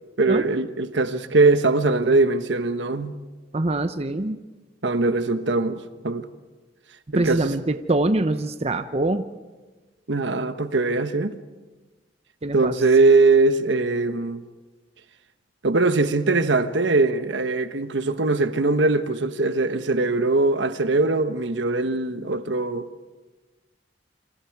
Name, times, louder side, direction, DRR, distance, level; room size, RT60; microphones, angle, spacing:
voice 1, 0.2-3.1 4.8-6.3 7.1-7.5 10.1-11.4 12.5-14.4 15.6-22.9, right 3 dB, 75° right, 1.2 m, -21 dB
voice 2, 3.5-4.4 7.1-9.2 12.4-12.7, right 2 dB, 35° right, 0.8 m, -24 dB
28.0 x 26.5 x 4.8 m
head